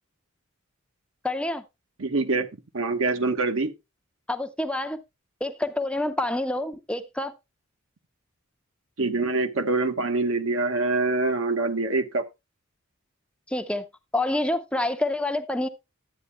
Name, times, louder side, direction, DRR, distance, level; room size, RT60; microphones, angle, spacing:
voice 1, 1.2-1.6 4.3-5.0 5.4-7.3 13.5-13.9 14.1-15.7, left 1 dB, 5° left, 0.6 m, -27 dB
voice 2, 2.0-2.5 2.7-3.7 9.0-12.2, right 3 dB, 70° right, 1.2 m, -25 dB
12.0 x 8.7 x 2.2 m
head